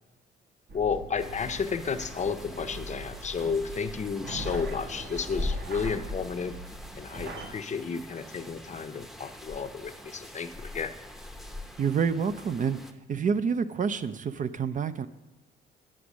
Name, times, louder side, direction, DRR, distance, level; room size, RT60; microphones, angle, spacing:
voice 1, 0.7-6.6 7.0-10.9, left 5 dB, 35° left, 10 dB, 0.6 m, -32 dB
sound 1, 0.7-7.5, right 2 dB, 55° right, 1.5 m, -42 dB
sound 2, 0.9-8.9, equal, 90° right, 3.5 m, -53 dB
sound 3, 1.2-12.9, left 2 dB, ahead, 0.7 m, -41 dB
voice 2, 11.8-12.8 13.1-15.1, right 6 dB, 40° right, 12 dB, 0.5 m, -28 dB
9.8 x 6.0 x 6.2 m, 1.1 s
cardioid pair, 90°, 20 cm